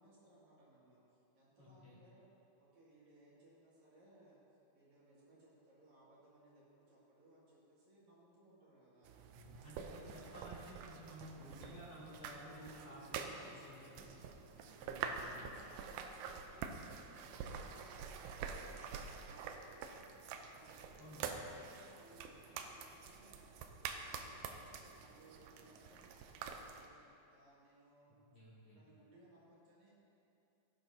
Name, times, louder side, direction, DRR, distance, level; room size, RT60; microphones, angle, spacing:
voice 1, 0.0-2.3 2.6-4.4 4.7-10.6 12.6-14.1 14.5-16.7 17.1-20.0 20.4-23.4 23.8-24.2 24.6-27.0 27.3-28.2 28.7-29.9, right 1 dB, 65° right, -7 dB, 3.5 m, -65 dB
voice 2, 1.6-2.0 9.3-14.1 14.8-15.4 21.0-21.4 28.3-28.8, equal, 50° left, -8 dB, 3.5 m, -54 dB
sound 1, 9.0-26.9, right 6 dB, 90° right, 2.2 m, -47 dB
17.0 x 10.0 x 2.7 m, 2.7 s
omnidirectional pair, 3.7 m